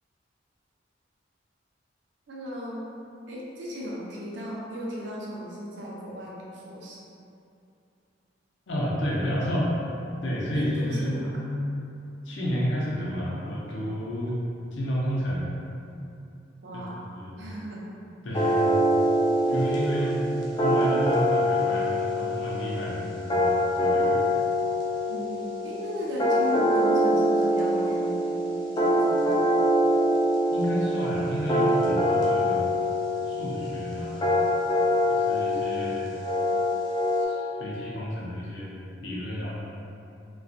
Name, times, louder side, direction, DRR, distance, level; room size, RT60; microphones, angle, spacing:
voice 1, 2.3-2.9 3.3-7.0 10.5-11.3 16.6-17.0 17.4-17.8 19.5-20.3 25.1-28.1 28.7-29.4, equal, 70° right, -5 dB, 0.5 m, -36 dB
voice 2, 8.7-9.8 10.2-11.6 12.2-14.4 14.7-15.4 17.2-17.4 18.2-18.8 19.5-20.3 20.6-24.3 30.5-32.8 33.2-34.2 35.1-36.1 37.2-38.7 39.0-39.6, equal, 75° left, -6 dB, 0.5 m, -30 dB
sound 1, 18.3-37.2, equal, 25° left, 0.4 m, -24 dB
2.4 x 2.3 x 2.6 m, 2.6 s
head